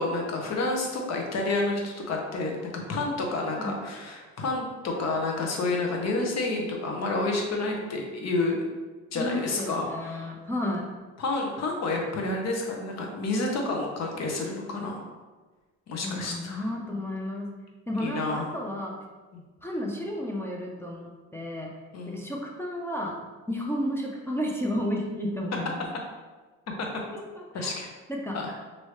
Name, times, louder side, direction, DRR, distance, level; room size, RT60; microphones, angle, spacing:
voice 1, 0.0-8.6 9.1-10.3 11.2-15.0 15.9-16.6 18.0-18.5 19.3-19.4 21.9-22.3 26.8-27.0 27.5-27.9 28.3-28.5, left 2 dB, 60° left, 1 dB, 0.8 m, -29 dB
voice 2, 9.1-10.9 16.0-17.5 17.9-18.9 19.6-23.2 23.5-25.8 27.1-27.8 28.1-28.4, left 1 dB, 10° left, -2 dB, 0.4 m, -32 dB
3.1 x 2.7 x 3.1 m, 1.3 s
cardioid pair, 90°, 30 cm